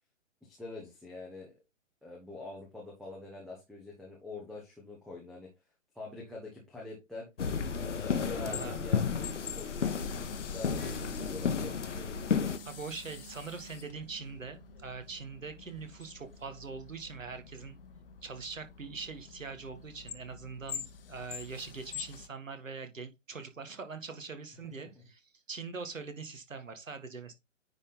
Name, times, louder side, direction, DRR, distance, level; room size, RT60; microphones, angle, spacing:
voice 1, 0.4-1.5 2.0-5.5 5.9-7.3 8.0-12.1 24.8-24.9, left 3 dB, ahead, 0.6 m, -45 dB
sound 1, 7.4-12.6, left 6 dB, 65° left, 1.1 m, -32 dB
sound 2, 8.2-22.3, left 8 dB, 45° left, 1.0 m, -47 dB
voice 2, 8.4-8.8 12.6-17.8 18.2-27.3, right 4 dB, 75° right, 1.8 m, -43 dB
sound 3, 10.8-17.6 17.9-18.1 18.5-18.6, right 5 dB, 60° right, 4.7 m, -55 dB
9.6 x 4.1 x 3.8 m
figure-of-eight pair, 135°, 39 cm